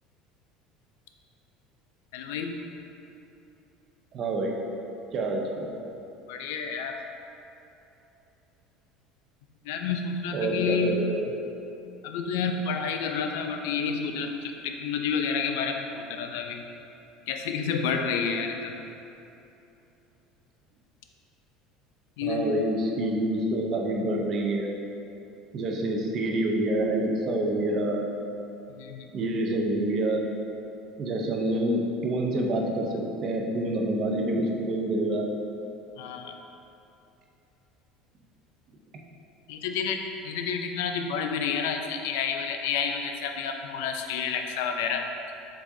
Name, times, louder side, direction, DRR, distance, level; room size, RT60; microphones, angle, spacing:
voice 1, 2.1-2.6 6.3-7.0 9.6-10.9 12.0-16.6 17.3-18.8 22.2-22.5 28.7-29.1 36.0-36.3 39.5-45.1, left 6 dB, 90° left, 4 dB, 0.4 m, -30 dB
voice 2, 4.1-4.6 5.1-5.8 10.3-11.3 22.2-24.7 25.5-28.0 29.1-30.3 31.0-35.3, right 1 dB, 40° right, 0 dB, 0.5 m, -27 dB
4.7 x 4.0 x 2.6 m, 2.9 s
cardioid pair, 140°, 0 cm